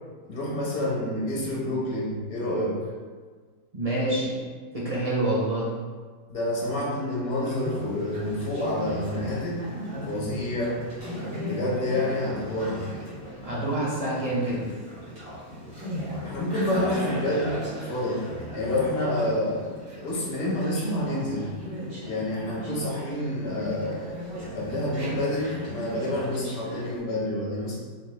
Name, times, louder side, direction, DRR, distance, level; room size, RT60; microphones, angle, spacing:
voice 1, 0.2-2.8 6.3-9.7 10.1-10.8 11.4-12.9 16.2-18.2 18.5-19.6 20.0-21.5 22.0-24.2 24.5-27.8, left 1 dB, 80° left, -4 dB, 1.4 m, -28 dB
voice 2, 3.7-4.3 4.7-5.7 13.4-14.7, right 1 dB, 45° right, -7 dB, 0.5 m, -27 dB
Conversation, 7.3-27.0, equal, 85° right, 2.0 m, -36 dB
5.0 x 2.1 x 3.1 m, 1.5 s
omnidirectional pair, 1.5 m